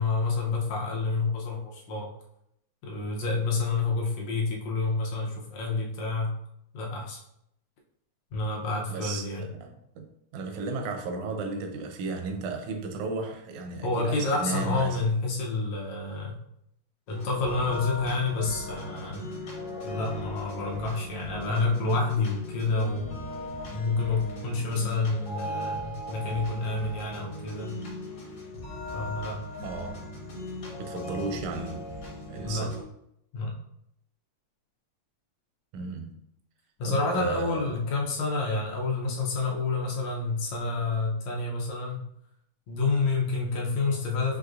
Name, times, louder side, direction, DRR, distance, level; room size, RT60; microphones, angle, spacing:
voice 1, 0.0-2.1 2.8-6.3 6.7-7.2 8.3-9.5 13.8-16.4 17.1-19.2 19.8-23.1 23.7-27.8 28.9-29.4 32.4-32.7 33.3-33.5 36.8-42.0 42.7-44.4, left 3 dB, 75° left, 1.9 m, -28 dB
voice 2, 8.9-15.0 29.6-30.0 30.8-31.9 32.3-32.8 35.7-36.2 36.8-37.8, right 3 dB, 85° right, 2.0 m, -34 dB
sound 1, 17.1-32.8, left 1 dB, 60° left, 1.2 m, -38 dB
6.2 x 2.8 x 2.4 m
omnidirectional pair, 3.3 m